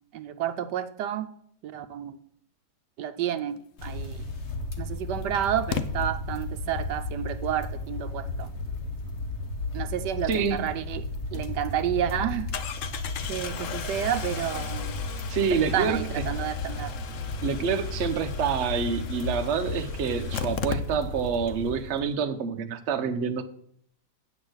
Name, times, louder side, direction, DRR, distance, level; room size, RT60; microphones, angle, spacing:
voice 1, 0.1-1.3 1.6-2.2 3.0-4.2 4.8-8.5 9.7-11.0 11.3-12.5 13.3-14.9 15.5-17.0, right 10 dB, 75° right, 11 dB, 1.2 m, -30 dB
sound 1, 3.8-22.1, left 3 dB, 45° left, 1.5 m, -34 dB
Engine starting, 4.2-4.3 5.7-5.8 10.9-11.0 11.4-11.5 12.5-21.3 21.6-21.7 21.9-22.0, left 7 dB, 60° left, 0.9 m, -37 dB
voice 2, 10.3-10.6 15.3-16.2 17.4-23.4, right 6 dB, 50° right, 7 dB, 0.9 m, -27 dB
8.7 x 6.6 x 7.9 m, 0.65 s
omnidirectional pair, 1.9 m